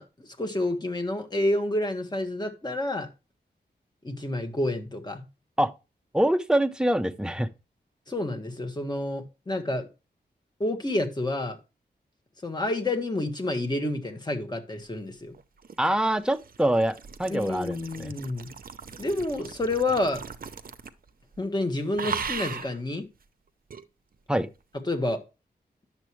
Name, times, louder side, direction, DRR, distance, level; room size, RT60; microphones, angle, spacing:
voice 1, 0.0-3.1 4.0-5.2 8.1-9.9 10.6-11.6 12.4-15.3 17.3-18.5 19.0-20.2 21.4-23.0 24.9-25.2, left 1 dB, 25° left, 1.6 m, -29 dB
voice 2, 6.1-7.5 15.8-18.1 24.3-24.5, right 1 dB, 5° right, 0.6 m, -25 dB
sound 1, 15.3-21.1 21.3-21.6 22.0-22.8 23.7-23.8, right 6 dB, 55° right, 0.7 m, -38 dB
10.5 x 7.1 x 3.1 m
wide cardioid pair, 120°, 18 cm